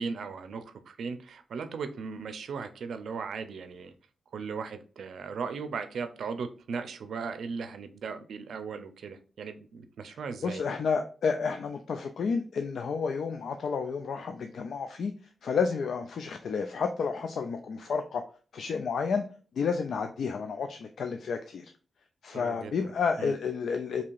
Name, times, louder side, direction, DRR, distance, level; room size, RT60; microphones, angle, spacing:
voice 1, 0.0-3.9 4.3-10.6 22.3-22.7 23.2-23.3, right 5 dB, 85° right, 9 dB, 0.5 m, -37 dB
voice 2, 10.4-15.1 15.4-18.2 18.5-19.2 19.5-21.7 22.2-24.0, left 5 dB, 75° left, 6 dB, 0.3 m, -31 dB
4.6 x 2.8 x 2.4 m, 0.40 s
wide cardioid pair, 125°, 0 cm